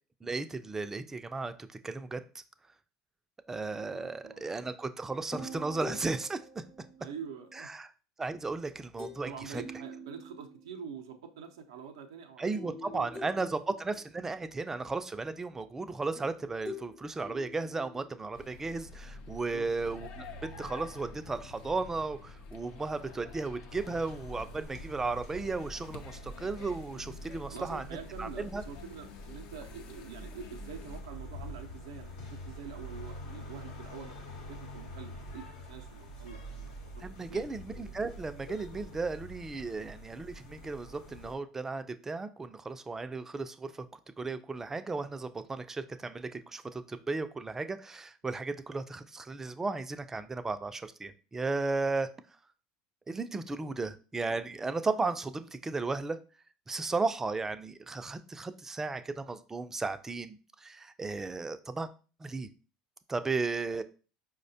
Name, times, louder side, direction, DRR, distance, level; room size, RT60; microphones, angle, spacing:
voice 1, 0.2-2.2 3.5-6.6 7.5-7.9 8.2-9.6 12.4-27.8 28.2-28.6 37.0-43.9 44.2-52.1 53.1-56.2 56.7-61.9 62.2-62.5 63.1-63.8, right 3 dB, 15° right, 10 dB, 0.3 m, -35 dB
voice 2, 3.9-4.5 7.0-7.7 9.2-13.4 19.3-19.7 27.2-34.2 34.4-37.4 48.3-48.4 53.6-53.8, right 6 dB, 90° right, 4 dB, 0.4 m, -46 dB
sound 1, 5.3-7.6 9.0-9.3 9.5-10.8 12.5-14.2 16.1-18.4, left 1 dB, 45° left, 1.0 m, -45 dB
sound 2, 18.3-31.0, left 2 dB, 65° left, 0.5 m, -48 dB
sound 3, 23.7-41.3, equal, 85° left, 0.8 m, -46 dB
4.6 x 2.1 x 2.7 m, 0.36 s
hypercardioid pair, 85°, 2 cm